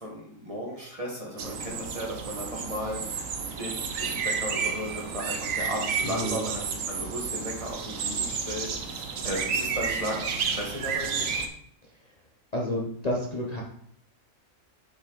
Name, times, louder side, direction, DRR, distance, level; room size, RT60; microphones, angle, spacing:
voice 1, 0.0-11.3, equal, 25° right, -2 dB, 1.7 m, -35 dB
sound 1, 1.4-11.5, right 5 dB, 75° right, 1.2 m, -31 dB
voice 2, 6.0-6.4 12.5-13.6, left 1 dB, 30° left, -3 dB, 1.1 m, -30 dB
6.8 x 5.6 x 4.1 m, 0.68 s
omnidirectional pair, 1.4 m